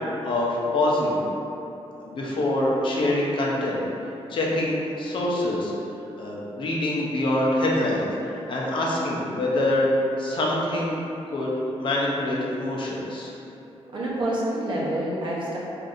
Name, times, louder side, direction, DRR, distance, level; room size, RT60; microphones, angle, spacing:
voice 1, 0.2-1.3 2.0-3.8 4.3-5.7 6.2-9.9 10.2-11.0 11.3-13.3, left 1 dB, 50° left, -4 dB, 0.7 m, -25 dB
voice 2, 13.9-15.6, right 1 dB, 50° right, -6 dB, 0.8 m, -27 dB
5.0 x 2.6 x 2.5 m, 2.9 s
cardioid pair, 130°, 11 cm